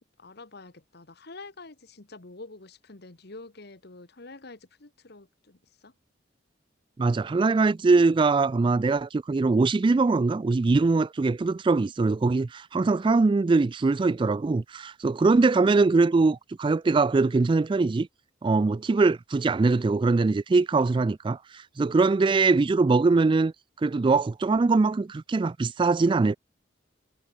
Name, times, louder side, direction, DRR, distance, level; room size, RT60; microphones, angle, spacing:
voice 1, 0.0-5.9, left 3 dB, 60° left, 1.6 m, -47 dB
voice 2, 7.0-18.1 18.4-23.5 23.8-26.4, right 3 dB, 25° right, 0.3 m, -22 dB
head